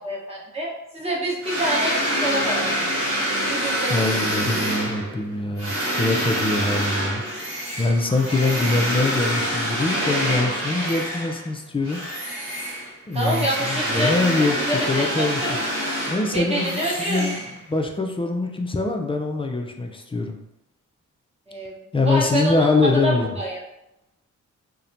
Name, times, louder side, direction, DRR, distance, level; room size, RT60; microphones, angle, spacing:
voice 1, 0.0-2.9 3.5-4.6 13.1-15.6 16.3-17.3 21.5-22.7 23.0-23.6, right 1 dB, 20° right, -4 dB, 0.9 m, -27 dB
sound 1, 1.4-11.5 11.8-17.8, equal, 40° right, 1.2 m, -26 dB
voice 2, 3.9-7.2 7.8-12.0 13.1-15.4 16.1-17.4 17.7-20.4 21.9-23.4, left 3 dB, 15° left, 3 dB, 0.3 m, -23 dB
2.8 x 2.1 x 2.5 m, 0.88 s
cardioid pair, 65°, 33 cm